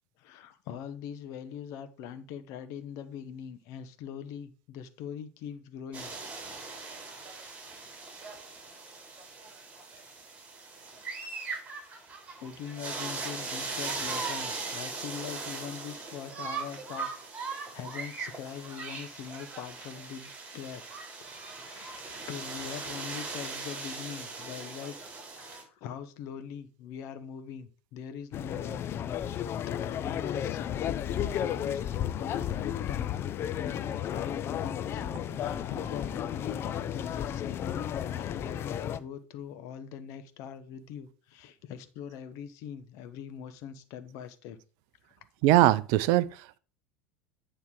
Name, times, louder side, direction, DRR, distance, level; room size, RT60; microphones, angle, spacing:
voice 1, 0.2-6.1 12.4-17.1 17.4-20.8 21.4-25.0 25.3-33.2 33.7-35.0 35.3-44.6, left 8 dB, 50° left, 0.9 m, -42 dB
sound 1, 5.9-25.6, right 4 dB, 20° right, 3.6 m, -39 dB
sound 2, 28.3-39.0, left 10 dB, 35° left, 0.5 m, -33 dB
voice 2, 45.4-46.6, right 15 dB, 50° right, 0.5 m, -22 dB
9.4 x 3.3 x 6.1 m
figure-of-eight pair, 80°, 7 cm